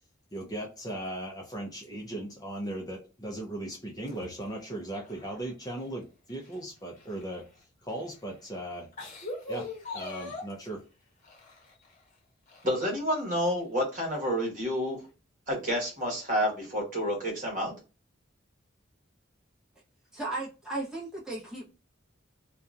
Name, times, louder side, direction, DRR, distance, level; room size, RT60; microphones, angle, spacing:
voice 1, 0.3-7.4 7.8-8.9 9.5-9.7 9.9-10.8, right 1 dB, 20° left, 0.6 m, -37 dB
sound 1, 4.0-5.9 6.3-7.6 8.3-8.4 8.8-10.7 11.2-12.0 12.5-13.2 13.6-13.7 14.8-14.9, left 2 dB, 40° left, 1.0 m, -42 dB
voice 2, 12.6-15.0 15.5-17.7, equal, 40° right, 1.3 m, -29 dB
voice 3, 20.1-21.7, right 2 dB, 5° right, 1.0 m, -35 dB
2.8 x 2.3 x 2.4 m
head